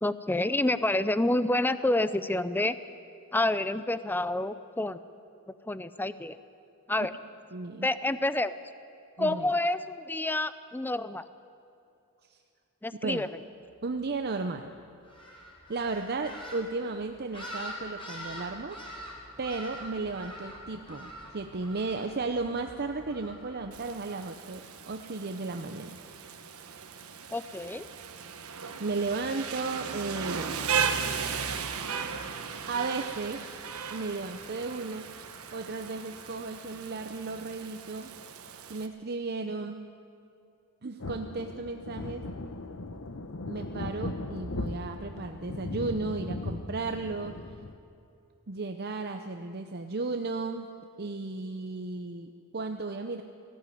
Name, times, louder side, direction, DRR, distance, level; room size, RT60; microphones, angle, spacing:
voice 1, 0.0-2.8 3.3-5.0 5.7-6.4 6.9-7.1 7.8-8.6 9.2-11.3 12.8-13.3 27.3-27.9, left 1 dB, 10° left, 14 dB, 0.5 m, -28 dB
voice 2, 7.5-7.9 9.2-9.5 12.3-12.4 13.0-13.2 13.8-14.7 15.7-18.8 19.4-26.0 28.8-30.5 32.7-33.5 33.9-38.1 38.7-39.8 40.8-42.2 43.5-47.3 48.5-50.7 51.0-53.2, right 3 dB, 45° right, 6 dB, 0.7 m, -34 dB
sound 1, 15.0-24.1, equal, 25° left, 3.6 m, -44 dB
Rain, 23.7-38.9, right 6 dB, 75° right, 1.3 m, -36 dB
sound 2, 41.0-47.8, left 2 dB, 65° left, 1.0 m, -38 dB
19.0 x 15.0 x 9.3 m, 2.6 s
head